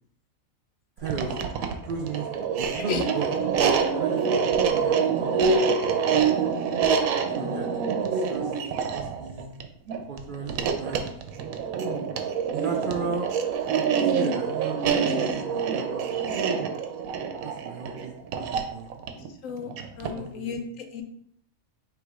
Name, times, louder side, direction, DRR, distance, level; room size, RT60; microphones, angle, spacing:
voice 1, 1.0-1.4 1.8-3.6 3.9-6.3 7.3-7.8 8.1-8.6 8.9-9.6 10.1-11.3 12.4-13.3 14.0-16.2 17.4-18.9 20.0-20.6, right 4 dB, 65° right, 1 dB, 0.5 m, -36 dB
sound 1, 1.0-20.3, right 6 dB, 90° right, 1.0 m, -26 dB
voice 2, 20.0-21.0, left 6 dB, 75° left, 4 dB, 1.0 m, -33 dB
3.5 x 3.0 x 4.7 m, 0.67 s
omnidirectional pair, 1.4 m